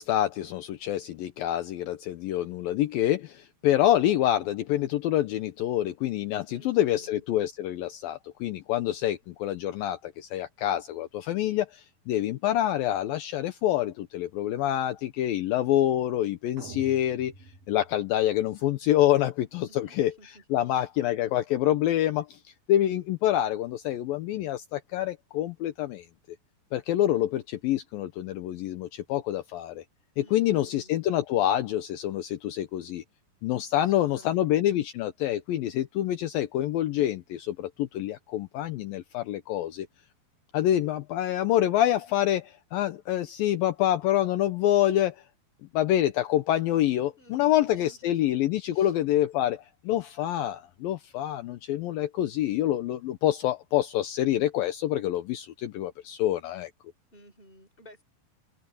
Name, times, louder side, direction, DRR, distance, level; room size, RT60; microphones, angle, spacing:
voice 1, 0.0-17.3 17.7-20.1 20.5-22.4 22.7-26.1 26.7-29.8 30.2-33.0 33.4-39.9 40.5-45.2 45.7-56.7, left 12 dB, 75° left, 2.6 m, -26 dB
voice 2, 6.5-7.2 19.7-20.4 20.7-20.9 30.2-30.9 33.8-34.8 47.2-48.4 48.7-48.9 57.1-58.0, left 1 dB, 15° left, 4.5 m, -54 dB
sound 1, 16.6-18.7, right 4 dB, 50° right, 2.4 m, -47 dB
omnidirectional pair, 4.4 m